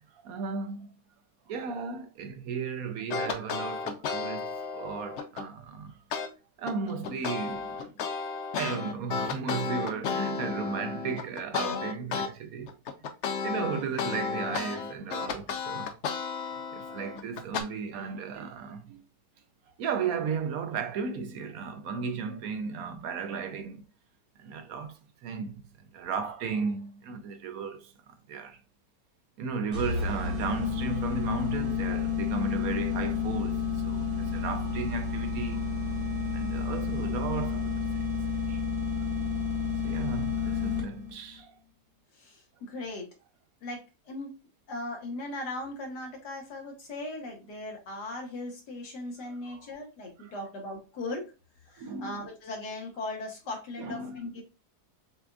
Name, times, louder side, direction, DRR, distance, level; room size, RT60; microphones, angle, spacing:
voice 1, 0.1-0.9 1.5-6.0 6.6-7.9 8.6-12.8 13.4-16.0 16.7-19.0 19.8-23.8 24.4-25.7 25.9-28.6 29.4-35.7 36.3-38.6 39.8-41.6 49.2-49.7 50.2-50.3 51.8-52.2 53.8-54.2, right 5 dB, 70° right, 1.0 m, -35 dB
sound 1, 3.1-5.5 6.1-6.3 6.7-12.3 12.7-17.6, left 5 dB, 65° left, 0.7 m, -33 dB
sound 2, 29.7-41.1, left 5 dB, 45° right, 1.7 m, -30 dB
voice 2, 42.1-43.1 43.6-44.3 44.7-51.3 51.7-54.4, left 2 dB, 90° left, 1.8 m, -38 dB
6.7 x 2.5 x 2.3 m
omnidirectional pair, 1.7 m